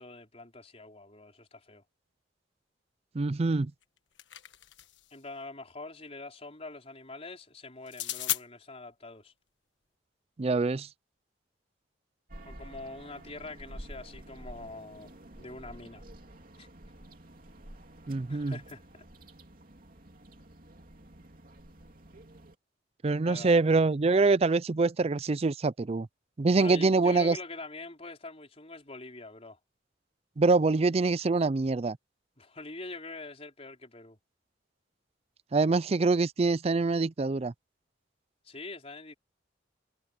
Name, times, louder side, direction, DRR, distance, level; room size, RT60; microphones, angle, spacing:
voice 1, 0.0-1.8 5.1-9.3 12.4-16.0 16.6-16.7 18.3-18.8 23.2-23.6 26.5-29.6 32.4-34.2 38.4-39.1, left 3 dB, 35° left, 4.5 m, -44 dB
voice 2, 3.1-3.7 10.4-10.9 18.1-18.5 23.0-26.1 26.4-27.4 30.4-32.0 35.5-37.5, right 3 dB, 35° right, 0.4 m, -25 dB
sound 1, 3.8-5.1 7.9-8.4, left 13 dB, 85° left, 1.4 m, -35 dB
sound 2, 12.3-22.5, right 1 dB, 50° right, 3.0 m, -50 dB
head